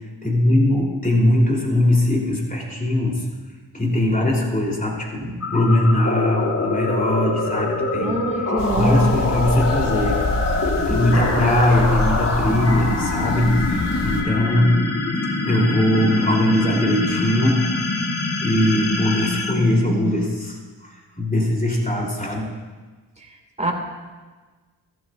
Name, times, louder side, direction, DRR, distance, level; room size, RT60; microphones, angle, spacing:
voice 1, 0.0-3.3 3.7-8.2 8.5-10.3 10.9-14.8 15.4-17.7 18.4-22.5, left 1 dB, 20° left, -1 dB, 3.5 m, -20 dB
sound 1, 5.4-20.5, left 2 dB, 35° left, 1.7 m, -24 dB
voice 2, 8.0-9.1 23.6-23.7, right 1 dB, 15° right, 2 dB, 2.2 m, -24 dB
sound 2, 8.6-14.2, left 2 dB, 50° left, 2.0 m, -27 dB
14.0 x 11.5 x 2.6 m, 1.4 s
supercardioid pair, 50°, 41 cm